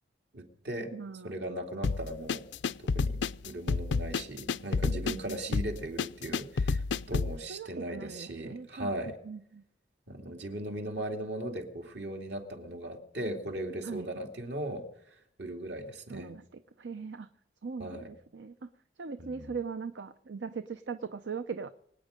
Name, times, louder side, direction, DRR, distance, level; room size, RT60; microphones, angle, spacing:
voice 1, 0.3-0.9 1.2-2.4 2.9-9.2 10.1-16.3 17.8-18.1 19.2-19.5, right 1 dB, 70° right, 2 dB, 2.6 m, -38 dB
voice 2, 0.9-1.3 1.8-2.0 4.8-5.6 7.5-8.9 9.2-9.6 13.8-14.1 16.1-17.3 17.6-18.0 18.3-18.7 19.0-21.7, right 5 dB, 90° right, 10 dB, 0.6 m, -40 dB
sound 1, 1.8-7.4, left 4 dB, 90° left, 0.5 m, -30 dB
24.0 x 9.2 x 5.1 m, 0.73 s
head